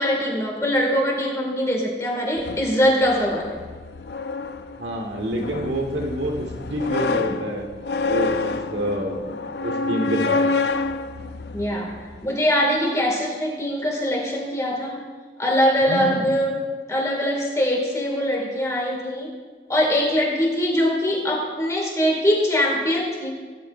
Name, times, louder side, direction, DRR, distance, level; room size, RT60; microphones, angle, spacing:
voice 1, 0.0-3.5 11.5-11.9 12.2-15.0 15.4-19.3 19.7-23.3, equal, 20° left, -1 dB, 2.2 m, -22 dB
sound 1, 2.4-12.3, left 3 dB, 70° left, 0.5 m, -28 dB
voice 2, 4.8-7.6 8.0-10.4 15.8-16.3, equal, 90° right, 1 dB, 1.6 m, -27 dB
18.0 x 10.5 x 2.6 m, 1.5 s
head